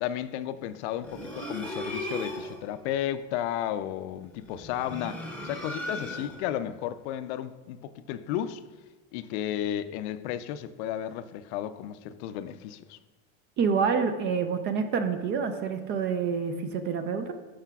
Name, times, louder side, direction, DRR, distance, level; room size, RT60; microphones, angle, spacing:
voice 1, 0.0-8.6 9.1-13.0, left 11 dB, 60° left, 0.5 m, -33 dB
sound 1, 1.0-2.6 4.5-6.5, left 1 dB, 5° left, 0.8 m, -36 dB
voice 2, 13.6-17.3, right 6 dB, 30° right, 0.4 m, -27 dB
11.5 x 5.0 x 2.3 m
supercardioid pair, 130°, 39 cm